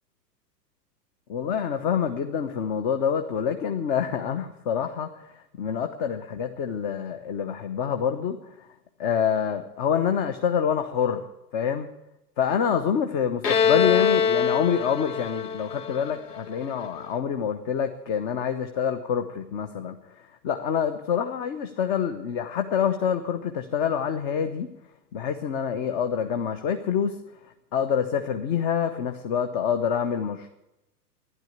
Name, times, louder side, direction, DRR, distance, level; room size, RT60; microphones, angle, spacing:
voice 1, 1.3-8.4 9.0-11.2 11.5-11.9 12.4-24.7 25.1-27.2 27.7-30.5, left 7 dB, 35° left, 7 dB, 1.1 m, -26 dB
Bowed string instrument, 13.4-17.0, left 7 dB, 75° left, 1.3 m, -24 dB
12.0 x 11.0 x 8.2 m, 0.90 s
hypercardioid pair, 115°, 49 cm